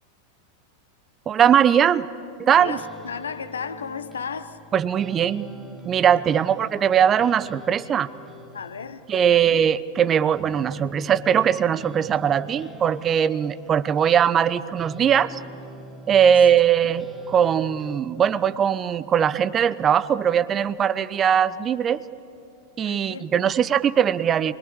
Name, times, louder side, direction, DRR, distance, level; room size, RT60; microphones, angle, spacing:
voice 1, 1.3-2.1 2.4-2.8 4.7-5.5 5.8-8.1 9.1-15.4 16.1-17.0 17.3-22.0 22.8-24.5, right 8 dB, 25° right, 0.7 m, -20 dB
sound 1, 2.5-18.0, equal, 5° right, 2.3 m, -44 dB
voice 2, 2.6-4.6 6.1-6.5 8.5-9.6 16.2-16.4 16.8-16.9 22.8-23.5, left 6 dB, 70° left, 1.1 m, -35 dB
26.5 x 23.0 x 8.7 m
figure-of-eight pair, 90°, 0 cm